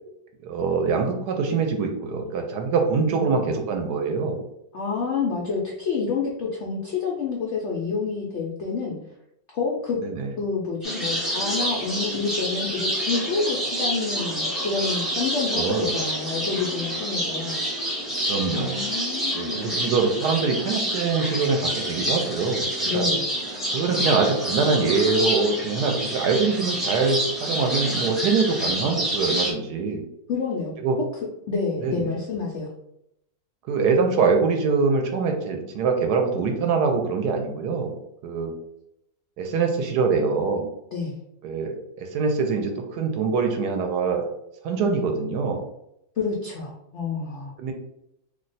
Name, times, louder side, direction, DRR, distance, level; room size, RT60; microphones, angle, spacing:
voice 1, 0.4-4.4 10.0-10.3 15.5-16.0 18.3-18.8 19.3-22.6 22.9-23.1 23.7-30.0 30.8-31.0 31.8-32.1 33.7-37.9 38.2-38.5 39.4-40.7 41.4-44.2 44.6-45.6 47.6-47.7, right 4 dB, 75° right, 3 dB, 1.1 m, -24 dB
voice 2, 4.7-9.0 9.5-10.0 10.4-17.6 18.5-19.7 22.9-23.3 30.3-30.7 31.5-32.7 40.9-41.2 46.2-47.6, left 4 dB, 80° left, -2 dB, 0.6 m, -28 dB
sound 1, 10.8-29.5, equal, ahead, 0.3 m, -28 dB
2.8 x 2.2 x 3.9 m, 0.80 s
omnidirectional pair, 1.9 m